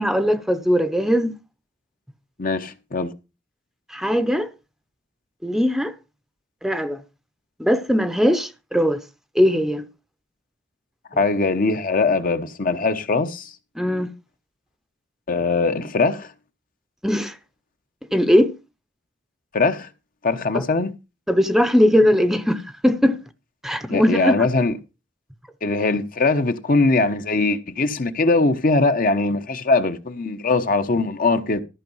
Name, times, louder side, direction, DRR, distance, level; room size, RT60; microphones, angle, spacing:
voice 1, 0.0-1.3 3.9-4.5 5.4-5.9 6.6-7.0 7.6-9.0 9.3-9.8 13.8-14.1 17.0-17.4 18.1-18.5 20.5-20.6 21.3-23.2 23.6-24.3, equal, ahead, 0.7 m, -19 dB
voice 2, 2.4-3.1 11.2-13.5 15.3-16.3 19.5-19.9 20.2-20.9 23.9-24.8 25.6-31.6, left 3 dB, 50° left, 1.0 m, -21 dB
14.0 x 5.5 x 5.5 m
head